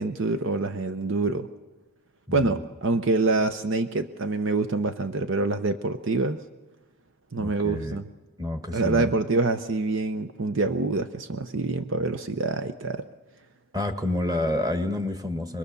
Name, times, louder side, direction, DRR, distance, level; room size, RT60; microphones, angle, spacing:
voice 1, 0.0-1.5 2.3-6.4 7.3-8.1 8.7-13.1, right 3 dB, 60° right, 10 dB, 0.8 m, -26 dB
voice 2, 7.3-8.0 8.4-9.1 13.7-15.6, left 1 dB, 15° right, 7 dB, 1.6 m, -28 dB
25.5 x 21.5 x 6.9 m, 1.2 s
head